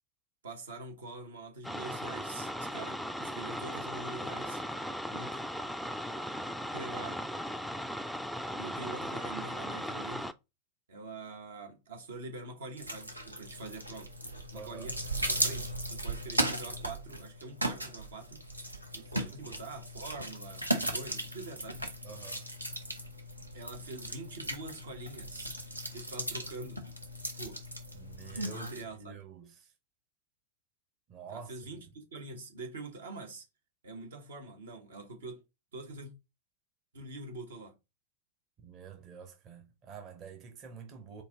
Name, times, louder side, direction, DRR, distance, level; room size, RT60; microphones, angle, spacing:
voice 1, 0.4-4.6 5.1-5.4 6.7-7.2 8.6-10.3 10.9-14.1 14.5-18.4 18.9-21.8 23.5-25.5 25.9-26.8 27.3-27.6 28.5-29.2 31.3-33.4 33.8-35.4 35.7-36.1 36.9-37.7, right 2 dB, 65° right, 1.0 m, -45 dB
sound 1, 1.6-10.3, equal, ahead, 0.3 m, -37 dB
voice 2, 8.5-8.9 14.5-14.9 19.2-19.5 22.0-22.5 27.9-29.7 31.1-31.5 31.8-31.9 38.6-41.2, right 6 dB, 35° right, 0.9 m, -48 dB
sound 2, 12.8-28.8, right 1 dB, 85° right, 0.7 m, -37 dB
4.5 x 2.6 x 3.4 m
figure-of-eight pair, 90°, 0 cm